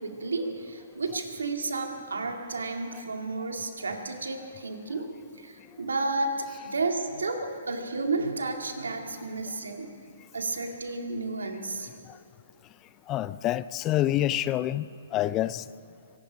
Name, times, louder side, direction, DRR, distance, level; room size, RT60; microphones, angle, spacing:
voice 1, 0.0-5.1 5.4-9.9 10.3-11.9, right 3 dB, 85° right, 4 dB, 2.0 m, -32 dB
voice 2, 13.1-14.9 15.1-15.6, left 13 dB, 25° left, 17 dB, 0.4 m, -27 dB
24.0 x 11.5 x 5.1 m, 2.7 s
hypercardioid pair, 135°, 0 cm